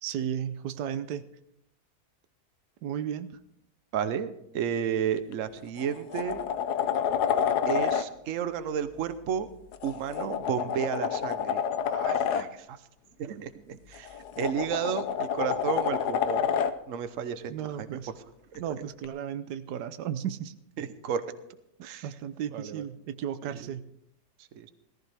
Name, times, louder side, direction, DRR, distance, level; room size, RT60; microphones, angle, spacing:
voice 1, 0.0-1.3 2.8-3.3 17.5-18.1 18.6-20.5 21.8-23.9, right 9 dB, 90° right, 12 dB, 1.3 m, -34 dB
voice 2, 3.9-6.4 7.7-9.5 9.8-12.8 13.2-16.5 16.9-17.5 17.8-18.0 18.5-18.6 20.8-21.2 21.8-22.1 22.5-22.8 23.4-23.7 24.5-24.7, right 8 dB, 60° right, 11 dB, 1.1 m, -32 dB
sound 1, 5.2-5.3 5.8-8.1 9.7-12.5 13.9-16.8 19.0-19.1, left 8 dB, 80° left, 1.3 m, -28 dB
18.0 x 14.5 x 3.4 m, 0.80 s
omnidirectional pair, 1.7 m